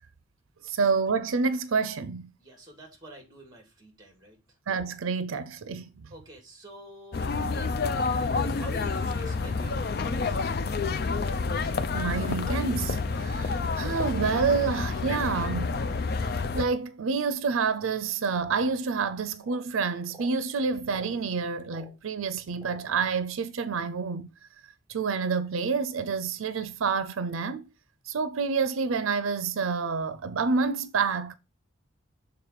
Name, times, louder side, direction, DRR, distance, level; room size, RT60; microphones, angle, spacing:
voice 1, 0.6-2.3 4.7-6.1 11.9-15.8 16.5-24.3 24.9-27.7 28.1-31.3, right 5 dB, 90° right, 0.5 m, -28 dB
voice 2, 2.4-4.6 6.1-7.4 8.2-10.4, right 1 dB, 20° right, 2.0 m, -48 dB
sound 1, 7.1-16.7, left 4 dB, 50° left, 0.4 m, -29 dB
sound 2, 19.4-19.7 20.0-20.4 20.8-21.2 21.7-21.9 22.6-22.9, right 2 dB, ahead, 3.9 m, -48 dB
6.7 x 3.9 x 4.7 m
head